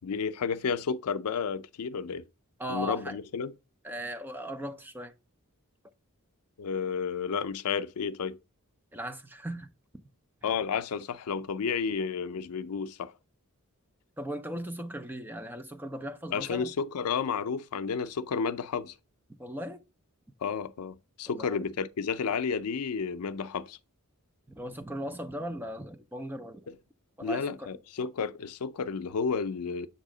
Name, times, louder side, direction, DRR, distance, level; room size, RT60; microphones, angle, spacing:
voice 1, 0.0-2.2 2.7-3.5 6.6-8.4 10.4-13.1 16.3-18.9 20.4-23.8 26.7-26.8 27.2-29.9, left 6 dB, 85° left, 0.5 m, -31 dB
voice 2, 2.6-3.2 3.8-5.1 8.9-9.7 14.2-16.7 19.4-19.8 21.3-21.6 24.5-26.7 27.2-27.7, equal, 10° right, 0.5 m, -38 dB
7.3 x 2.7 x 4.9 m
head